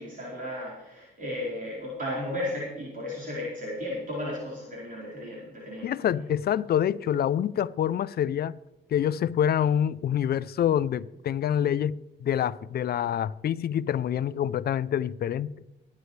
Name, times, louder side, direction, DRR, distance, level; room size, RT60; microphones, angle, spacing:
voice 1, 0.0-5.9, left 1 dB, 45° right, 4.9 m, -34 dB
voice 2, 5.8-8.6 8.9-15.5, left 9 dB, 50° left, 0.5 m, -26 dB
22.5 x 9.6 x 3.3 m
cardioid pair, 90°, 20 cm